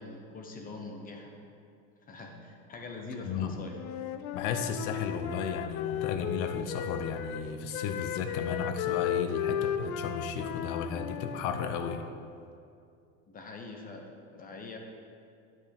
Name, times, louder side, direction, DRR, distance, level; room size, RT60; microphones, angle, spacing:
voice 1, 0.0-1.3 2.0-3.8 13.3-14.8, left 2 dB, 20° left, 3 dB, 0.9 m, -43 dB
voice 2, 3.3-3.6 4.3-12.0, left 6 dB, 50° left, 8 dB, 0.7 m, -34 dB
Wind instrument woodwind instrument, 3.7-7.4 7.7-12.1, left 10 dB, 85° left, 0.6 m, -35 dB
10.5 x 8.1 x 3.5 m, 2.5 s
supercardioid pair, 150°, 41 cm